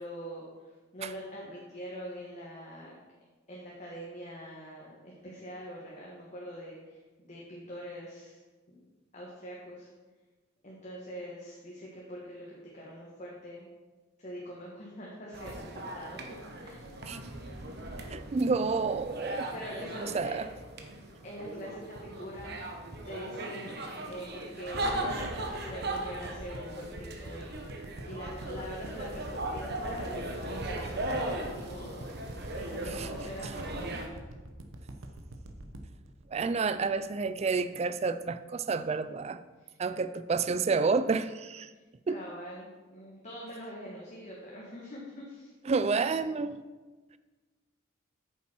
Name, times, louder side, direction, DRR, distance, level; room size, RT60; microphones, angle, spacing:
voice 1, 0.0-2.9 3.5-8.4 8.7-8.8 9.1-9.9 10.6-13.6 14.2-16.2 16.6-17.0 19.5-20.4 21.2-22.6 23.0-25.1 25.4-32.1 32.5-34.0 39.6-39.8 42.1-45.5, equal, 35° left, -4 dB, 1.4 m, -44 dB
sound 1, 15.3-34.1, right 1 dB, 55° right, 1.1 m, -38 dB
voice 2, 18.1-19.5 20.0-20.5 32.9-33.1 36.3-39.4 39.8-41.7 42.1-42.2 45.7-46.6, right 4 dB, 30° right, 13 dB, 0.3 m, -29 dB
sound 2, 24.8-37.1 37.5-37.6, right 1 dB, 85° right, 0.9 m, -44 dB
8.8 x 7.2 x 4.5 m, 1.3 s
head